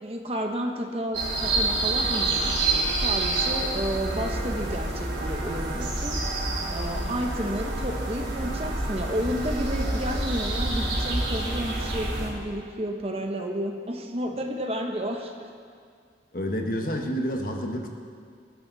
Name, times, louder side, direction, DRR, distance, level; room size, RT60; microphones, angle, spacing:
voice 1, 0.0-6.2 6.7-15.5, equal, 35° right, 3 dB, 1.1 m, -31 dB
sound 1, 1.1-12.3, right 2 dB, 80° right, 3.5 m, -28 dB
voice 2, 16.3-17.9, equal, 50° left, 2 dB, 1.4 m, -29 dB
20.5 x 12.0 x 4.1 m, 2.1 s
head